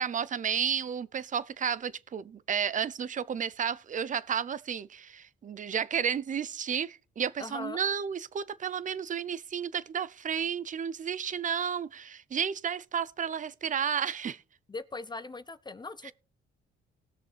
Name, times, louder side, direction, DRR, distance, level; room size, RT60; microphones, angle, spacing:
voice 1, 0.0-14.4 16.0-16.1, right 7 dB, 40° right, 0.6 m, -32 dB
voice 2, 7.4-7.8 14.7-16.1, left 3 dB, 20° left, 0.6 m, -40 dB
19.0 x 6.7 x 3.3 m
cardioid pair, 90°, 20 cm